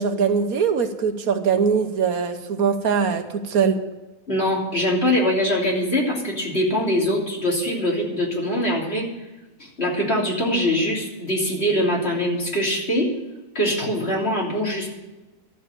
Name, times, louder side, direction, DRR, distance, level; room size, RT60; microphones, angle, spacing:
voice 1, 0.0-3.8, right 6 dB, 70° right, 7 dB, 1.4 m, -22 dB
voice 2, 4.3-9.1 9.6-13.1 13.5-14.9, equal, 40° left, -3 dB, 3.5 m, -23 dB
12.5 x 7.6 x 8.7 m, 1.1 s
omnidirectional pair, 1.6 m